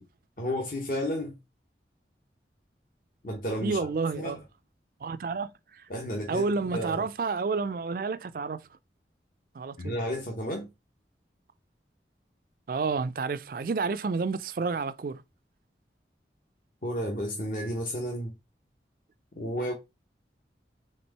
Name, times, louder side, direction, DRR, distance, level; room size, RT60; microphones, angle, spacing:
voice 1, 0.4-1.3 3.2-3.8 4.1-4.4 5.9-7.0 9.8-10.7 16.8-18.3 19.4-19.7, equal, 50° left, 1.0 m, -32 dB
voice 2, 3.6-4.4 5.0-5.8 6.3-8.6 9.5-10.0 12.7-15.2, right 4 dB, 50° right, 0.4 m, -30 dB
4.4 x 3.5 x 2.9 m
head